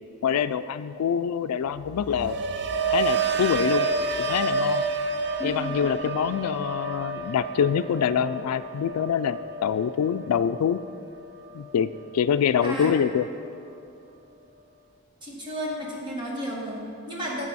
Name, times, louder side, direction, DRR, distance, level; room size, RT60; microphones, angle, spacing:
voice 1, 0.2-2.4 2.9-3.9 4.2-4.8 5.4-10.8 11.5-11.9 12.1-13.3, left 7 dB, 90° left, 13 dB, 0.3 m, -25 dB
sound 1, 1.8-11.9 12.2-12.7, right 3 dB, 50° right, 0.5 m, -30 dB
voice 2, 5.4-5.8 12.6-12.9 15.2-17.5, equal, 20° right, -4 dB, 1.7 m, -33 dB
12.0 x 7.5 x 4.1 m, 2.8 s
head